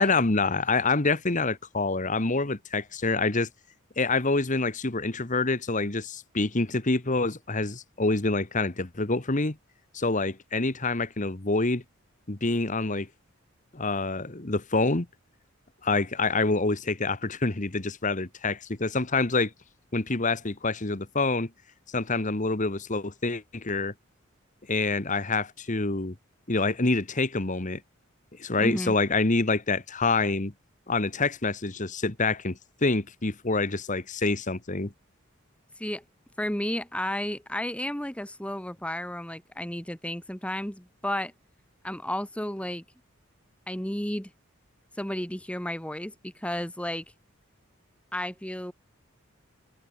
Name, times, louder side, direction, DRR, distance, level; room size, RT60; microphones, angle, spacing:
voice 1, 0.0-3.5 4.0-9.6 9.9-11.8 12.3-13.1 13.7-15.1 15.8-19.5 19.9-21.5 21.9-23.9 24.7-26.1 26.5-27.8 28.4-30.5 30.9-34.9, left 3 dB, 40° left, 1.5 m, -26 dB
voice 2, 28.6-29.0 35.8-36.0 36.4-41.3 41.8-42.8 43.7-44.3 45.0-47.0 48.1-48.7, left 1 dB, 5° left, 2.0 m, -32 dB
head